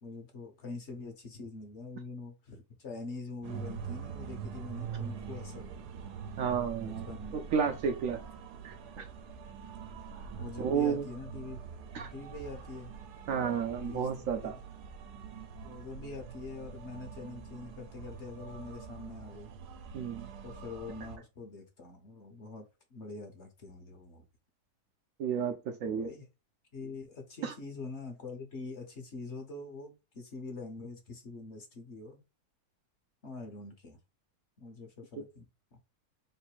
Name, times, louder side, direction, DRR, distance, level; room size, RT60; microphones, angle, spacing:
voice 1, 0.0-5.8 6.8-7.4 10.4-11.6 11.9-12.9 13.8-14.5 15.6-19.5 20.4-24.2 25.8-26.3 26.7-32.2 33.2-34.0 34.6-35.8, left 3 dB, 50° left, 1.1 m, -44 dB
sound 1, 3.4-21.2, right 6 dB, 90° right, 1.2 m, -44 dB
voice 2, 6.4-7.1 7.3-8.2 8.6-9.1 10.6-11.1 11.9-12.1 13.3-14.5 19.9-20.3 25.2-25.6 25.8-26.1 27.4-27.5, right 7 dB, 70° right, 0.9 m, -31 dB
3.3 x 2.6 x 4.5 m
omnidirectional pair, 1.7 m